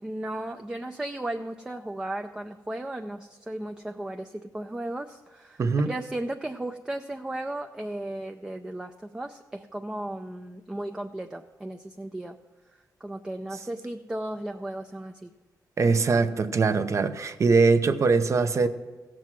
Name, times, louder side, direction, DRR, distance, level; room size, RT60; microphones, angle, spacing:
voice 1, 0.0-12.4 13.0-15.3, right 1 dB, 10° right, 0.4 m, -35 dB
voice 2, 15.8-18.7, right 4 dB, 45° right, 0.7 m, -22 dB
16.0 x 7.5 x 6.1 m
wide cardioid pair, 120°, 7 cm